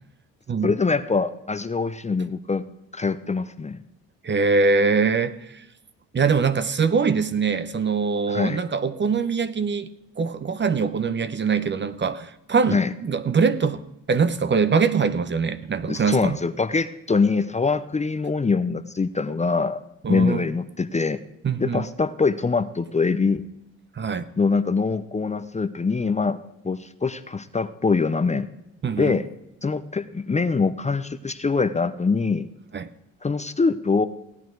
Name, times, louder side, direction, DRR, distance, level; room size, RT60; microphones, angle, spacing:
voice 1, 0.6-2.6 2.9-3.8 8.3-8.6 12.7-12.9 15.9-19.8 20.1-21.2 21.6-23.4 24.4-26.4 26.6-28.5 29.0-29.2 29.6-32.5 33.2-34.1, left 4 dB, 20° left, 0.7 m, -23 dB
voice 2, 4.2-5.6 6.1-9.9 10.2-13.8 14.1-16.4 20.0-20.4 21.4-21.9 24.0-24.3 28.8-29.2 32.7-32.9, right 5 dB, 35° right, 0.9 m, -23 dB
16.5 x 9.2 x 4.6 m
supercardioid pair, 70°, 34 cm